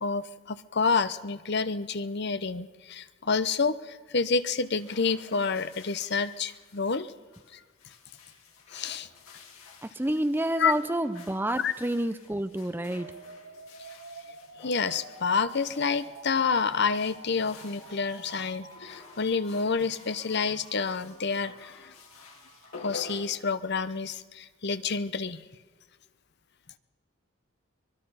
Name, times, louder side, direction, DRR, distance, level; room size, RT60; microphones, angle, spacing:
voice 1, 0.0-7.1 7.5-7.6 8.7-9.1 10.6-10.7 11.6-11.7 14.6-21.9 22.8-25.4, left 5 dB, 50° left, 13 dB, 0.8 m, -28 dB
sound 1, 4.5-24.1, left 4 dB, 85° left, 3.9 m, -50 dB
voice 2, 9.8-13.1, right 1 dB, 10° right, 11 dB, 0.5 m, -29 dB
sound 2, 13.0-23.0, right 3 dB, 80° right, 3.4 m, -50 dB
24.0 x 21.0 x 5.6 m, 1.5 s
head